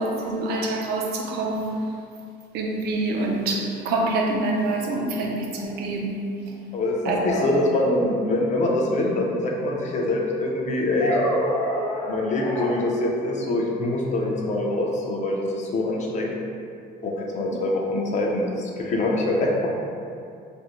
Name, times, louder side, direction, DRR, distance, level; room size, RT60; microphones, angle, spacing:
voice 1, 0.0-1.8 2.5-6.3 7.1-7.3, right 2 dB, 70° right, 0 dB, 0.4 m, -26 dB
sound 1, 5.5-5.6 7.3-8.2 11.0-12.7, equal, 70° left, 0.8 m, -27 dB
voice 2, 6.7-11.2 12.1-16.3 17.0-19.7, left 2 dB, 45° left, -1 dB, 0.5 m, -24 dB
2.5 x 2.1 x 2.9 m, 2.4 s
cardioid pair, 110°, 17 cm